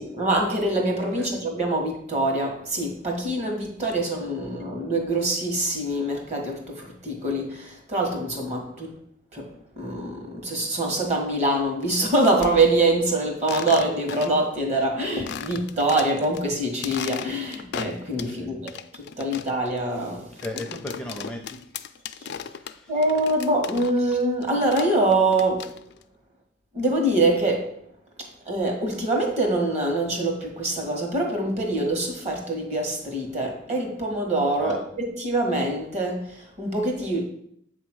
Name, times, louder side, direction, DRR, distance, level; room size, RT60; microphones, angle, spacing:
voice 1, 0.0-9.0 9.3-18.7 19.2-20.3 22.2-22.3 22.9-25.7 26.7-27.7 28.2-37.2, right 2 dB, 35° right, 1.7 m, -24 dB
sound 1, 11.8-12.5 13.4-14.5 14.8-14.9 15.3-16.4 16.7-18.4 18.7-24.2 24.4-26.0, left 8 dB, 60° left, 0.4 m, -37 dB
voice 2, 20.4-21.6 22.2-22.9 34.6-34.8, left 1 dB, 5° left, 0.6 m, -37 dB
8.0 x 3.1 x 6.2 m
head